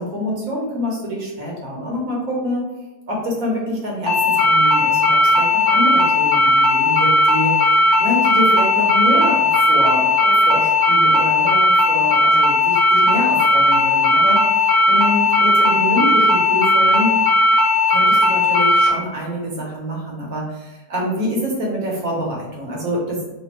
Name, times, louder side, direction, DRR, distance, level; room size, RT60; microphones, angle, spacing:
voice 1, 0.0-2.7 3.1-14.4 14.9-17.1 17.9-23.3, equal, 60° right, -3 dB, 1.2 m, -26 dB
sound 1, 4.1-18.9, left 2 dB, 5° right, 1.2 m, -16 dB
3.3 x 2.6 x 4.2 m, 1.0 s
omnidirectional pair, 1.8 m